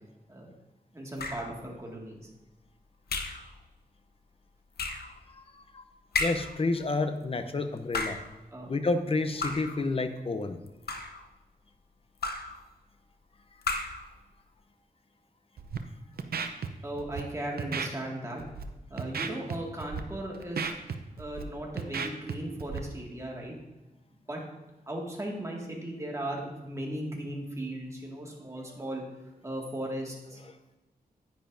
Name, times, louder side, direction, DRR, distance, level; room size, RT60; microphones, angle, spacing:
voice 1, 0.9-2.2 8.5-8.7 16.8-18.4 18.9-20.7 21.2-23.6 24.3-24.4 24.9-29.0 29.4-30.4, right 1 dB, 20° right, -1 dB, 1.9 m, -37 dB
sound 1, 1.2-1.6 3.1-3.5 4.8-5.1 6.1-6.6 7.8-8.3 9.4-9.8 10.7-11.3 12.2-12.6 13.6-14.1, left 3 dB, 80° left, 0.8 m, -33 dB
voice 2, 5.0-5.8 6.2-8.2 8.7-10.6 30.4-30.6, left 3 dB, 35° left, 9 dB, 0.7 m, -30 dB
Scratching (performance technique), 15.6-15.8 16.2-16.7 17.0-17.2 17.6-17.9 18.4-18.6 19.0-19.6 19.8-20.0 20.3-21.4 21.8-22.3 22.6-22.8, right 6 dB, 75° right, 0.7 m, -33 dB
10.0 x 9.3 x 2.6 m, 1.1 s
wide cardioid pair, 110°, 16 cm